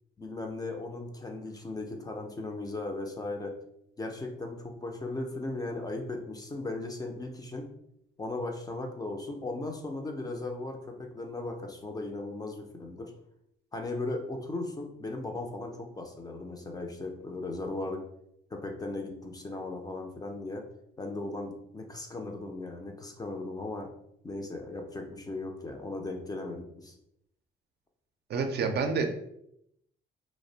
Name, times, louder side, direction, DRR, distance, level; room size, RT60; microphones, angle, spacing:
voice 1, 0.2-3.6 4.0-7.7 8.2-13.1 13.7-18.0 18.5-20.6 21.0-23.9 24.2-26.9, left 2 dB, 20° left, 3 dB, 0.4 m, -37 dB
voice 2, 28.3-29.1, right 5 dB, 55° right, 5 dB, 0.4 m, -28 dB
2.4 x 2.0 x 2.7 m, 0.77 s
cardioid pair, 90°, 20 cm